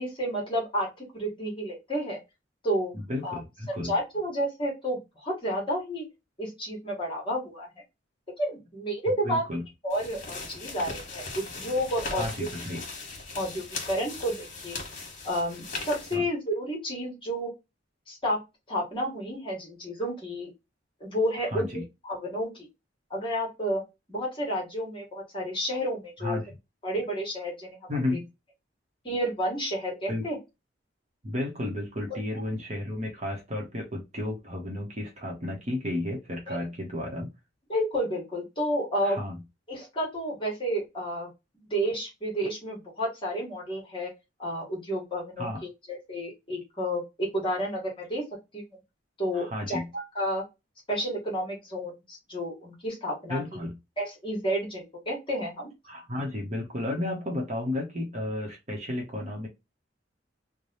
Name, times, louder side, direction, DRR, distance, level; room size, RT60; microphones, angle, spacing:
voice 1, 0.0-2.2 2.6-2.9 3.2-3.4 3.7-6.0 6.4-7.7 8.4-9.4 9.8-12.5 13.4-14.8 15.2-17.5 18.1-18.4 18.7-20.5 21.0-22.7 23.1-23.8 24.1-26.4 26.8-27.8 29.0-30.4 36.5-36.6 37.7-39.2 39.7-41.3 41.5-44.1 44.4-45.5 45.9-48.2 48.5-48.7 49.2-50.4 50.9-53.4 54.0-55.7, equal, 30° left, -3 dB, 1.4 m, -31 dB
voice 2, 2.9-3.9 9.2-9.6 12.1-12.8 16.1-16.2 21.5-21.8 26.2-26.5 27.9-28.3 30.1-30.2 31.2-37.3 39.0-39.4 45.4-45.6 49.3-49.9 53.3-53.8 55.8-59.5, left 1 dB, 40° right, 0 dB, 1.0 m, -32 dB
sound 1, 9.9-16.2, left 3 dB, 45° left, 1.4 m, -39 dB
3.2 x 2.2 x 4.0 m, 0.23 s
head